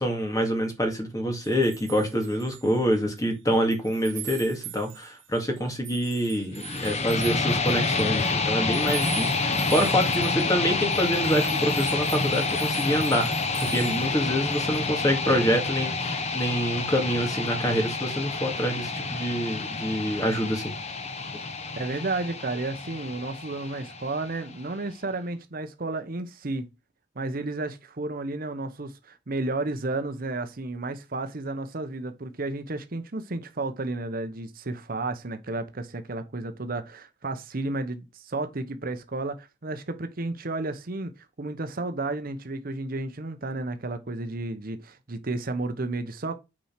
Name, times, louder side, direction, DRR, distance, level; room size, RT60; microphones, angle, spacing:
voice 1, 0.0-13.3 13.6-20.7, equal, 20° left, 2.1 m, -26 dB
sound 1, 1.4-3.3 3.5-14.9, right 11 dB, 80° right, 2.1 m, -43 dB
sound 2, 6.5-24.6, left 3 dB, 35° left, 1.0 m, -28 dB
voice 2, 21.7-26.7 27.2-41.1 41.4-46.4, right 2 dB, 45° right, 0.8 m, -32 dB
8.9 x 4.3 x 5.8 m
head